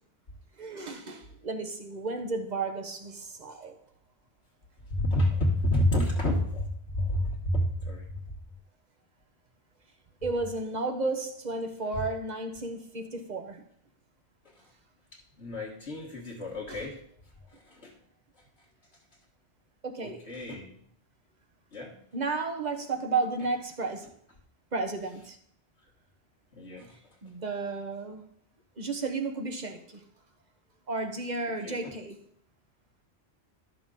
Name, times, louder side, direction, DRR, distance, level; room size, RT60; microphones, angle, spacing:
voice 1, 0.6-3.8 10.2-13.6 16.7-16.9 19.8-20.3 22.1-24.1 24.7-25.4 27.2-28.2 28.8-30.0 30.9-32.2, right 3 dB, 40° right, 5 dB, 1.2 m, -33 dB
voice 2, 4.9-8.0 14.4-14.6 15.4-17.0 17.7-17.9 20.0-20.8 21.7-22.0 26.5-27.0 31.6-31.9, left 1 dB, 70° left, -5 dB, 1.7 m, -29 dB
12.0 x 6.5 x 3.8 m, 0.66 s
omnidirectional pair, 1.2 m